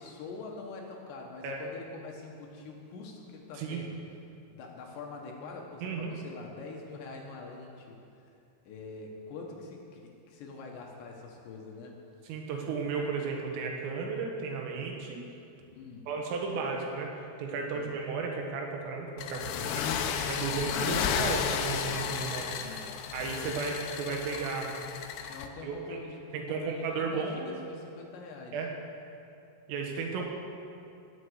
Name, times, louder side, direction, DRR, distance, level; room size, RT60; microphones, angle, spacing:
voice 1, 0.0-3.9 4.5-8.0 8.7-12.0 15.7-16.1 17.8-18.0 19.3-19.9 22.6-23.4 25.3-28.6, left 4 dB, 70° left, 0 dB, 3.4 m, -45 dB
voice 2, 3.6-3.9 5.8-6.1 12.2-15.2 16.1-17.1 17.4-19.9 20.3-22.5 23.1-24.7 25.6-26.0 26.3-27.5 28.5-28.7 29.7-30.2, right 4 dB, 85° right, 1 dB, 4.3 m, -34 dB
sound 1, 19.2-25.5, left 7 dB, 85° left, 2.4 m, -33 dB
17.0 x 7.4 x 8.2 m, 2.6 s
omnidirectional pair, 5.8 m